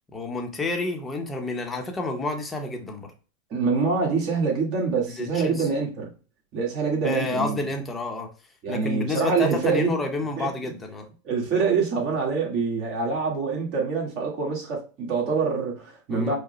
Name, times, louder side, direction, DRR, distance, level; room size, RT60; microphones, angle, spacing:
voice 1, 0.1-3.1 5.0-5.7 7.0-8.3 8.7-11.1 16.1-16.4, left 2 dB, 15° left, 0.8 m, -29 dB
voice 2, 3.5-6.1 6.5-7.6 8.6-10.0 10.4-10.5 11.2-16.4, right 5 dB, 45° right, 1.6 m, -25 dB
4.8 x 2.1 x 3.0 m
supercardioid pair, 130°, 0 cm